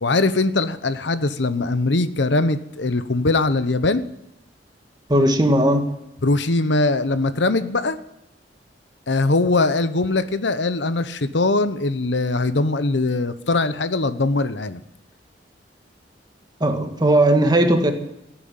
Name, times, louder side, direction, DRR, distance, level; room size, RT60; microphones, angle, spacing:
voice 1, 0.0-4.0 6.2-8.0 9.1-14.8, left 2 dB, 70° left, 0.9 m, -21 dB
voice 2, 5.1-5.9 16.6-17.9, right 1 dB, 25° right, 1.8 m, -17 dB
17.0 x 9.1 x 8.9 m
head